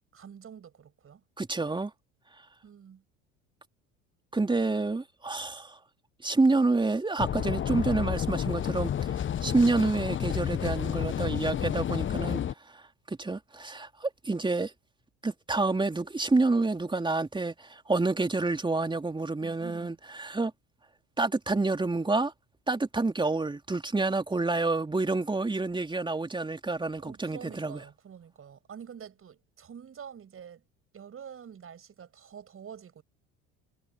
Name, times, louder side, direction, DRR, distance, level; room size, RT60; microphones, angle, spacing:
voice 1, 0.1-1.2 2.6-3.0 19.4-20.0 27.0-30.6 30.9-33.0, right 8 dB, 35° right, 7.5 m, -47 dB
voice 2, 1.4-1.9 4.3-5.8 6.2-9.1 9.4-12.4 13.1-14.7 15.2-20.5 21.2-22.3 22.7-27.8, right 3 dB, 10° right, 3.2 m, -28 dB
sound 1, 7.2-12.5, left 9 dB, 30° left, 1.2 m, -30 dB
figure-of-eight pair, 65°, 38 cm